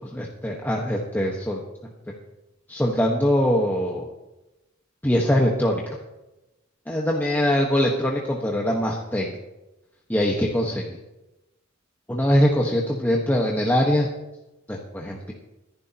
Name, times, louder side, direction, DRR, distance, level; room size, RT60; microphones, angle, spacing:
voice 1, 0.0-1.6 2.7-4.1 5.0-6.0 6.9-9.4 10.1-11.0 12.1-14.1 14.7-15.3, equal, 10° left, -2 dB, 1.4 m, -22 dB
25.0 x 11.0 x 3.0 m, 0.99 s
head